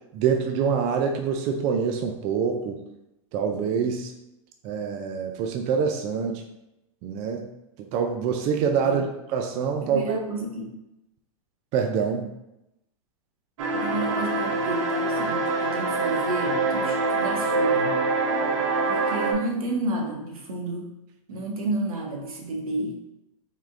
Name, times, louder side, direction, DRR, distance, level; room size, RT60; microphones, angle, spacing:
voice 1, 0.1-2.8 3.3-4.1 4.6-6.4 7.0-7.5 7.8-9.0 9.3-10.2 11.7-12.3, right 6 dB, 40° right, 3 dB, 0.5 m, -25 dB
voice 2, 9.8-10.7 13.7-17.9 18.9-20.9 21.3-23.0, right 2 dB, 90° right, 0 dB, 1.1 m, -31 dB
sound 1, 13.6-19.3, right 3 dB, 65° right, 0.8 m, -25 dB
3.7 x 3.1 x 3.6 m, 0.90 s
hypercardioid pair, 120°, 18 cm